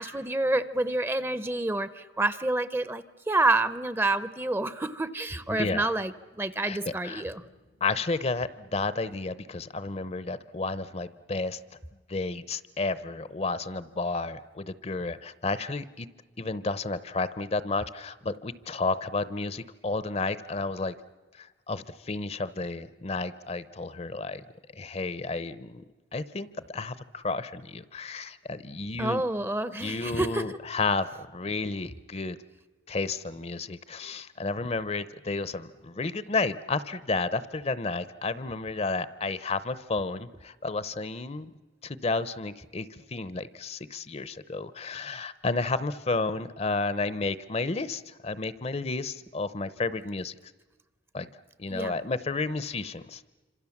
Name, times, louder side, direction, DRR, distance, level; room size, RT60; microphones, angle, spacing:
voice 1, 0.0-7.4 29.0-30.4 51.7-51.9, right 2 dB, 15° right, 14 dB, 0.7 m, -28 dB
voice 2, 5.5-5.9 6.6-6.8 7.0-7.2 7.8-11.6 12.1-16.1 16.4-21.0 21.3-24.4 24.7-25.8 26.1-29.2 29.8-32.4 32.9-41.5 41.8-50.4 51.1-51.3 51.6-53.3, left 3 dB, 35° left, 15 dB, 0.7 m, -32 dB
27.5 x 26.5 x 7.2 m, 1.3 s
head